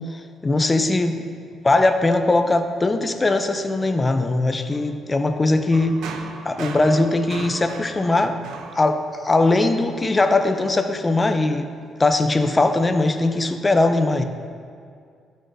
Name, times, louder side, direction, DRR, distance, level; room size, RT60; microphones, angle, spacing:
voice 1, 0.1-1.2 1.6-5.9 6.4-8.4 8.7-11.7 12.0-14.2, left 2 dB, 25° left, 7 dB, 0.6 m, -20 dB
sound 1, 5.7-9.5, right 5 dB, 80° right, 0.6 m, -37 dB
12.0 x 6.3 x 2.7 m, 2.2 s
cardioid pair, 90°, 0 cm